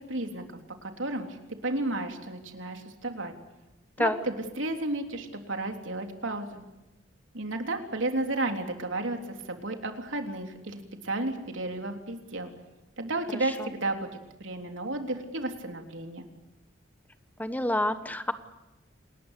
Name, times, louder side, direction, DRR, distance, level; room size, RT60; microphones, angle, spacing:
voice 1, 0.1-0.5 0.8-1.3 1.6-3.3 4.0-6.6 7.3-9.2 9.5-12.5 13.0-16.2, right 2 dB, 80° right, 4 dB, 3.5 m, -32 dB
voice 2, 17.4-18.3, left 1 dB, 10° left, 10 dB, 1.2 m, -28 dB
27.5 x 20.0 x 8.4 m, 1.0 s
head